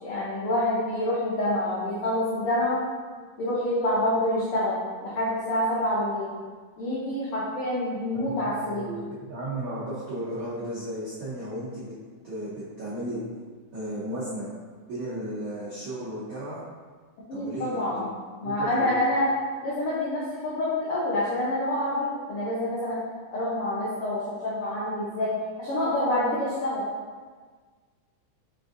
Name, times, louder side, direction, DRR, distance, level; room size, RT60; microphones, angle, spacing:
voice 1, 0.0-2.8 3.4-6.3 6.8-8.9 17.3-19.3 19.6-23.0 23.3-26.8, left 1 dB, 85° left, -8 dB, 1.2 m, -27 dB
voice 2, 8.1-11.9 12.2-13.2 13.7-14.5 14.9-16.6 17.3-18.0 18.4-18.9, right 1 dB, 85° right, -11 dB, 1.0 m, -34 dB
5.1 x 3.4 x 2.6 m, 1.5 s
omnidirectional pair, 3.6 m